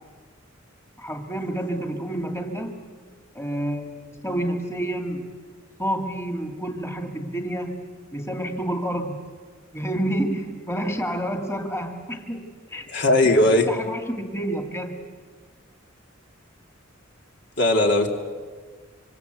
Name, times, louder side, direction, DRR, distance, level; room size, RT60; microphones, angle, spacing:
voice 1, 1.0-2.8 3.3-5.3 5.8-7.8 8.1-9.2 9.7-12.9 13.2-14.9, right 1 dB, 15° left, 4 dB, 2.1 m, -29 dB
voice 2, 12.9-13.6 17.6-18.1, left 1 dB, 60° left, 3 dB, 2.9 m, -18 dB
26.0 x 25.5 x 8.2 m, 1.5 s
head